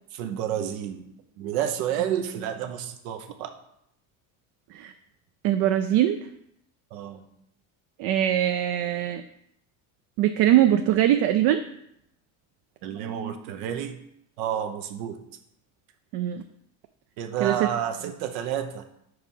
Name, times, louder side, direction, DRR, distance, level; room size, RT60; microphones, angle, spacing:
voice 1, 0.1-1.0 1.4-3.5 6.9-7.2 12.8-14.0 14.4-15.2 17.2-18.8, right 9 dB, 90° right, 6 dB, 0.9 m, -30 dB
voice 2, 5.4-6.2 8.0-9.2 10.2-11.6 16.1-16.4 17.4-17.7, right 12 dB, 65° right, 8 dB, 0.5 m, -22 dB
4.7 x 4.7 x 5.4 m, 0.76 s
cardioid pair, 115°, 40 cm